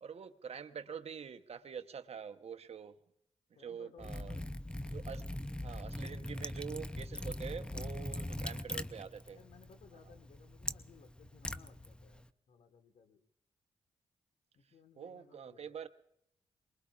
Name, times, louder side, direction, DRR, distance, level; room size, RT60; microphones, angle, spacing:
voice 1, 0.0-3.0 3.6-4.4 4.9-5.2 5.6-9.4 15.0-15.9, right 7 dB, 60° right, 10 dB, 0.9 m, -46 dB
voice 2, 3.5-4.3 7.6-8.5 9.2-13.2 14.5-15.8, left 6 dB, 80° left, 7 dB, 1.5 m, -61 dB
Liquid, 4.0-12.3, left 1 dB, 10° left, 0.5 m, -42 dB
23.5 x 21.0 x 2.4 m, 0.79 s
cardioid pair, 55°, 12 cm